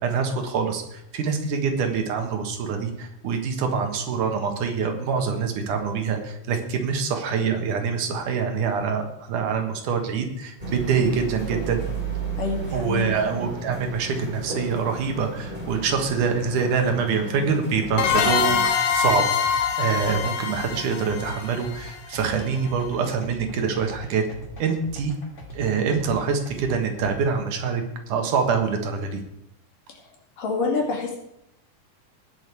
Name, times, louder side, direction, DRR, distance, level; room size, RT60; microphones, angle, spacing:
voice 1, 0.0-11.8 12.7-19.3 19.5-24.3 24.6-25.1 25.5-29.2, right 5 dB, 75° right, 5 dB, 2.9 m, -25 dB
sound 1, 10.6-18.6, right 3 dB, 15° right, 3.5 m, -33 dB
voice 2, 12.4-13.1 29.9-30.0 30.4-31.2, left 4 dB, 80° left, 1 dB, 4.0 m, -27 dB
sound 2, 18.0-22.5, left 7 dB, 65° left, 1.9 m, -24 dB
sound 3, 18.5-27.1, equal, 25° left, 2.4 m, -42 dB
19.5 x 6.9 x 4.6 m, 0.79 s
omnidirectional pair, 3.7 m